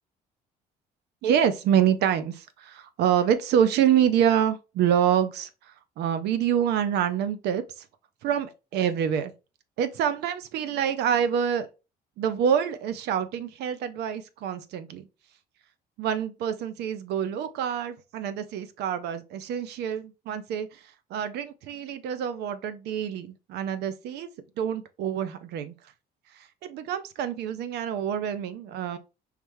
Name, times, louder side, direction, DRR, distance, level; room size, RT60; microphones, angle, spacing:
voice 1, 1.2-7.9 8.2-9.3 9.8-11.7 12.2-15.1 16.0-24.3 24.6-25.7 26.3-29.0, right 9 dB, 80° right, 0.7 m, -26 dB
4.9 x 3.3 x 3.1 m
cardioid pair, 110°, 17 cm